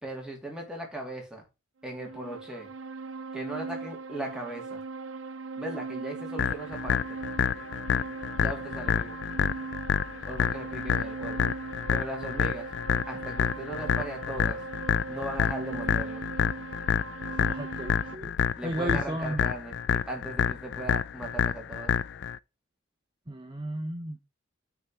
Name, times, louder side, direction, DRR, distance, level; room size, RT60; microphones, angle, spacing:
voice 1, 0.0-1.5 1.8-2.7 3.3-4.8 5.6-7.2 8.3-9.2 10.3-11.5 11.9-12.7 13.1-14.6 15.1-16.2 18.5-21.9, right 1 dB, 5° right, 2.8 m, -38 dB
sound 1, 1.8-18.2, right 4 dB, 75° right, 0.6 m, -39 dB
sound 2, 6.4-22.4, left 7 dB, 55° left, 0.3 m, -28 dB
voice 2, 17.3-18.3 18.6-19.4 23.3-24.2, right 1 dB, 25° right, 0.9 m, -34 dB
9.5 x 4.2 x 4.6 m
head